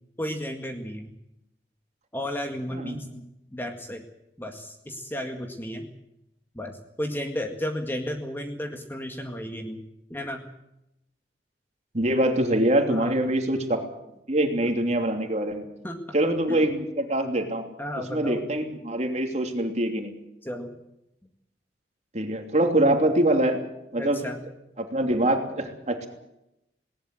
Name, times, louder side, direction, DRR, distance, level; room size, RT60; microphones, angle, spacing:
voice 1, 0.2-1.1 2.1-3.3 3.5-4.0 4.4-5.9 6.5-9.8 10.1-10.5 12.9-13.2 15.8-16.0 16.5-16.6 17.8-18.4 20.4-20.7 24.0-24.4, equal, 10° left, 4 dB, 2.0 m, -33 dB
voice 2, 11.9-13.8 14.3-15.6 16.1-17.6 18.1-20.1 22.1-23.6 23.9-24.2 24.8-26.1, right 1 dB, 40° right, 4 dB, 3.0 m, -24 dB
20.0 x 18.5 x 7.8 m, 0.85 s
head